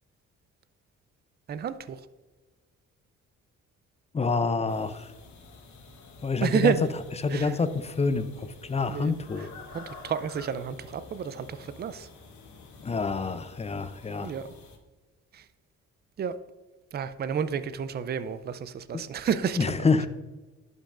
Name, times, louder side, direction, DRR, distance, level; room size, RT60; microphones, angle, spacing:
voice 1, 1.5-2.0 6.4-6.9 7.3-7.6 8.9-9.5 9.7-12.1 14.2-14.4 15.3-15.4 16.2-16.3 16.9-19.7, right 7 dB, 35° right, 13 dB, 0.4 m, -30 dB
voice 2, 4.1-5.1 6.2-6.7 7.2-9.5 12.8-14.3 18.9-19.0 19.6-20.1, left 4 dB, 20° left, 12 dB, 0.5 m, -27 dB
sound 1, 4.7-14.8, left 3 dB, 70° left, 1.3 m, -49 dB
11.5 x 5.4 x 2.5 m, 1.3 s
cardioid pair, 90°, 30 cm